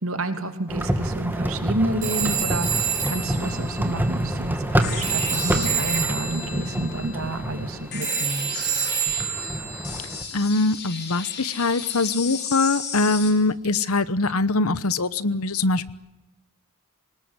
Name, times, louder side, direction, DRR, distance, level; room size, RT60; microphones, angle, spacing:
voice 1, 0.0-8.7, right 2 dB, 65° right, 8 dB, 2.9 m, -29 dB
sound 1, 0.7-10.2, right 1 dB, 10° right, 2.1 m, -28 dB
Telephone, 2.0-4.8 5.0-10.3, right 8 dB, 35° right, 7.0 m, -29 dB
sound 2, 4.8-13.3, left 6 dB, 50° left, 4.6 m, -35 dB
voice 2, 10.3-15.9, left 3 dB, 75° left, 16 dB, 1.1 m, -23 dB
27.0 x 19.5 x 9.7 m, 0.94 s
head